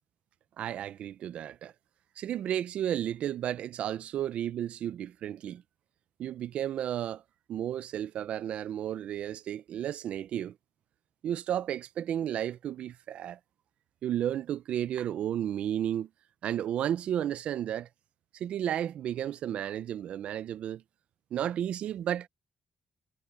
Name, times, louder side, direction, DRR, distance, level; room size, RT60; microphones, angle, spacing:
voice 1, 0.6-1.7 2.2-5.6 6.2-7.2 7.5-10.5 11.2-13.4 14.0-16.1 16.4-17.9 18.3-20.8 21.3-22.3, right 10 dB, 60° right, 0.4 m, -33 dB
cardioid pair, 170°, 2 cm